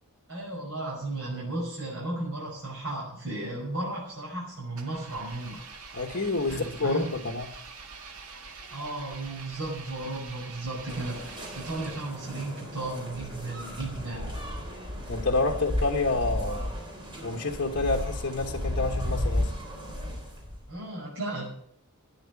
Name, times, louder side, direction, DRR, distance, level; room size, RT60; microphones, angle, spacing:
voice 1, 0.3-5.6 6.4-7.1 8.7-14.4 20.7-21.5, right 2 dB, 60° right, -5 dB, 5.5 m, -35 dB
Engine, 4.8-12.5, right 4 dB, 75° right, 1.8 m, -45 dB
voice 2, 5.9-7.5 15.1-16.7 17.2-19.5, left 3 dB, 55° left, 2 dB, 1.3 m, -28 dB
sound 1, 10.9-20.7, left 1 dB, 20° right, 3.7 m, -34 dB
12.5 x 9.7 x 7.2 m, 0.65 s
head